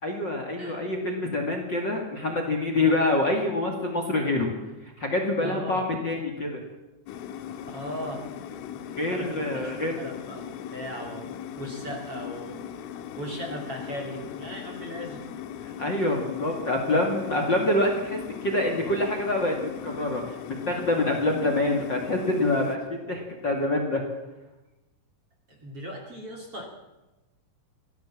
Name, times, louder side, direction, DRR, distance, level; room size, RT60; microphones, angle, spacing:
voice 1, 0.0-4.5 5.0-6.6 9.0-10.0 15.6-24.0, left 2 dB, 40° left, 3 dB, 1.7 m, -26 dB
voice 2, 5.4-5.8 7.7-8.2 9.0-12.6 13.2-15.2 16.0-16.2 25.5-26.6, equal, 35° right, 1 dB, 2.7 m, -38 dB
sound 1, 7.1-22.8, left 9 dB, 85° left, 3.8 m, -39 dB
24.0 x 16.5 x 7.5 m, 1.0 s
omnidirectional pair, 5.8 m